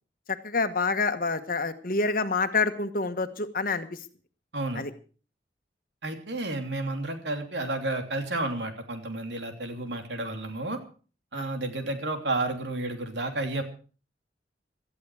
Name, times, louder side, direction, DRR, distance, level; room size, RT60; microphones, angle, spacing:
voice 1, 0.4-3.9 4.8-4.9 11.3-11.4, left 4 dB, 50° left, 9 dB, 1.4 m, -27 dB
voice 2, 6.0-10.8 11.3-13.6, right 2 dB, 80° right, 5 dB, 3.2 m, -31 dB
17.5 x 13.5 x 4.9 m, 0.38 s
head